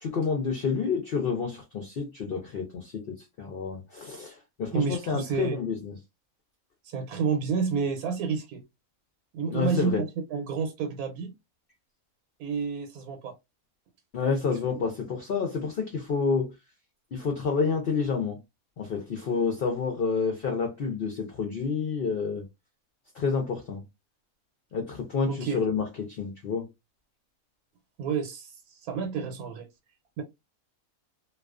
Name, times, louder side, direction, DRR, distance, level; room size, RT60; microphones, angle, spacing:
voice 1, 0.0-6.0 9.5-10.0 14.1-16.5 17.1-18.4 18.8-22.4 23.1-23.8 24.7-26.7, left 5 dB, 60° left, 0.6 m, -29 dB
voice 2, 4.7-5.6 6.8-8.6 9.3-11.3 12.4-13.3 14.7-14.9 25.3-25.6 28.0-29.7 30.2-30.3, right 5 dB, 85° right, 1.1 m, -30 dB
2.3 x 2.3 x 2.3 m
omnidirectional pair, 1.5 m